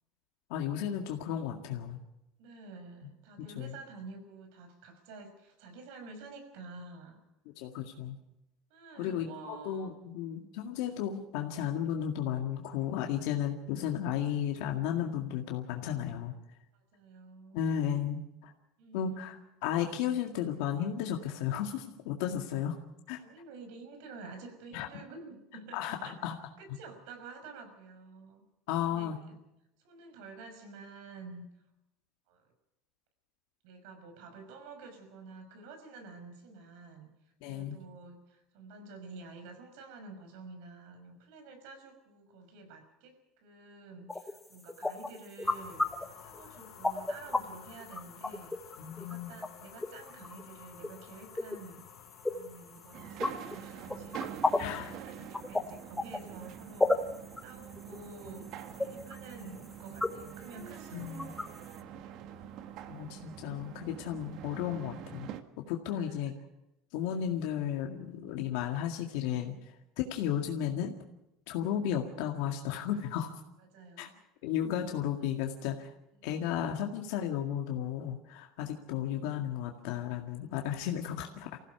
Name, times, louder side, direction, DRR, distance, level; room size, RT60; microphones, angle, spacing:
voice 1, 0.5-2.0 3.6-3.7 7.6-8.2 9.0-16.3 17.5-18.5 18.9-22.7 23.1-23.2 24.7-24.9 25.7-26.3 28.7-29.2 37.4-37.8 48.8-49.3 54.6-55.0 60.9-61.3 62.9-65.3 65.7-66.4 66.9-69.5 70.0-70.9 71.5-73.4 74.0-74.1 74.4-75.9 76.2-81.6, left 9 dB, 75° left, 2 dB, 2.0 m, -34 dB
voice 2, 2.4-7.2 8.7-9.9 16.7-17.6 18.8-19.4 23.2-26.1 26.6-28.4 28.9-29.2 29.8-31.5 32.3-32.4 33.6-37.1 37.4-45.8 46.2-51.8 52.3-57.1 57.4-61.1 65.9-66.1 73.7-74.2 75.0-75.1 76.2-76.4 81.1-81.3, right 3 dB, 75° right, 7 dB, 5.8 m, -49 dB
sound 1, 44.1-47.4 47.8-49.1 49.4-49.5 49.8-50.4 50.8-50.9 51.2-51.6 52.1-52.3 52.8-54.8 55.3-55.6 55.9-56.4 56.8-61.8, left 2 dB, 5° left, 1.2 m, -32 dB
sound 2, 45.4-54.8, left 10 dB, 55° left, 3.2 m, -54 dB
sound 3, 52.9-65.4, right 9 dB, 50° right, 1.5 m, -45 dB
25.0 x 16.0 x 6.9 m, 0.88 s
cardioid pair, 155°, 0 cm